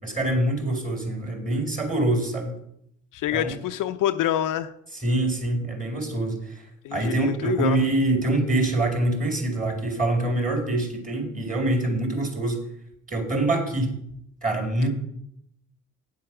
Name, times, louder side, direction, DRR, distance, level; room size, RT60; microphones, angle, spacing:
voice 1, 0.0-2.5 3.3-3.5 4.9-6.6 6.9-12.6 13.1-13.9 14.4-14.9, right 2 dB, 20° right, 2 dB, 4.3 m, -25 dB
voice 2, 3.1-4.7 6.8-7.8, left 12 dB, 55° left, 9 dB, 0.6 m, -26 dB
9.5 x 7.6 x 6.2 m, 0.75 s
hypercardioid pair, 60°, 37 cm